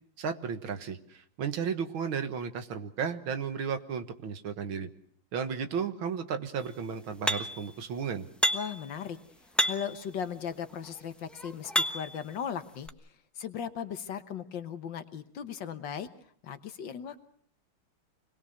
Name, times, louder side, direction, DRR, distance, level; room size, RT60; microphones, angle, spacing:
voice 1, 0.2-4.9 5.3-8.3, right 6 dB, 75° right, 8 dB, 2.2 m, -34 dB
sound 1, 7.3-7.7 8.4-8.9 9.6-10.0 10.8-12.2 12.9-13.0, equal, ahead, 0.5 m, -29 dB
voice 2, 8.5-9.2 9.6-12.9 13.4-16.1 16.4-17.2, left 8 dB, 65° left, 10 dB, 1.7 m, -37 dB
26.0 x 20.5 x 6.5 m, 0.63 s
omnidirectional pair, 2.3 m